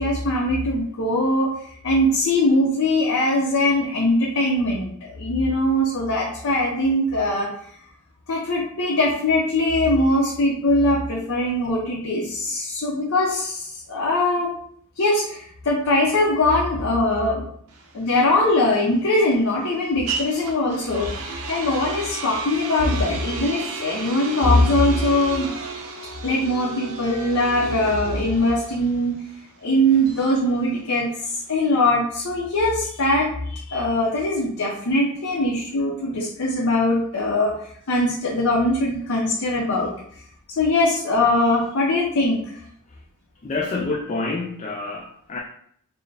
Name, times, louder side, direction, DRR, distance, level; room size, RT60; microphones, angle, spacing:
voice 1, 0.0-1.5 1.8-7.5 8.3-14.5 15.0-17.5 17.9-25.5 26.2-29.2 29.6-37.5 37.9-39.9 40.6-42.6, left 1 dB, 80° left, -3 dB, 0.6 m, -21 dB
sound 1, 17.7-31.5, right 4 dB, 85° right, 0.6 m, -34 dB
voice 2, 43.4-45.4, left 3 dB, 35° left, 0 dB, 0.4 m, -27 dB
4.3 x 2.1 x 3.3 m, 0.64 s
head